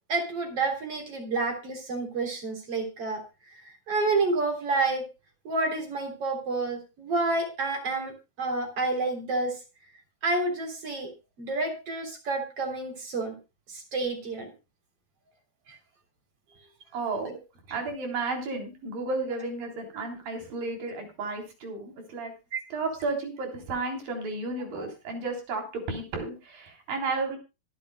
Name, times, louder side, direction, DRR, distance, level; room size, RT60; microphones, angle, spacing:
voice 1, 0.1-3.2 3.6-5.1 5.4-8.1 8.4-9.6 10.2-11.1 11.4-13.4 13.7-14.5 15.7-15.8 22.5-22.6 24.8-24.9, right 3 dB, 40° right, 3 dB, 4.3 m, -29 dB
voice 2, 16.9-17.4 17.7-22.3 22.7-27.4, right 3 dB, 75° right, 3 dB, 5.3 m, -33 dB
25.0 x 8.6 x 2.2 m, 0.28 s
omnidirectional pair, 4.0 m